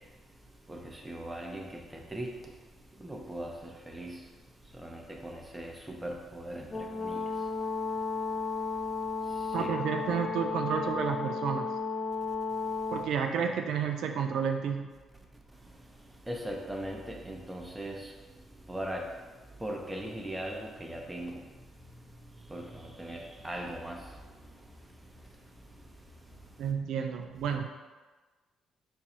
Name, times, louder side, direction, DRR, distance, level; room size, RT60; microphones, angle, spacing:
voice 1, 0.7-2.3 3.0-4.2 4.8-7.3 9.6-9.7 16.3-18.1 18.7-19.1 19.6-21.4 22.5-24.1, right 1 dB, 10° right, 0 dB, 0.7 m, -39 dB
Brass instrument, 6.7-13.1, left 4 dB, 35° left, 0.9 m, -34 dB
voice 2, 9.5-11.7 12.9-14.9 26.6-27.7, right 7 dB, 80° right, 4 dB, 0.3 m, -31 dB
4.6 x 2.6 x 4.2 m, 1.3 s
cardioid pair, 90°, 0 cm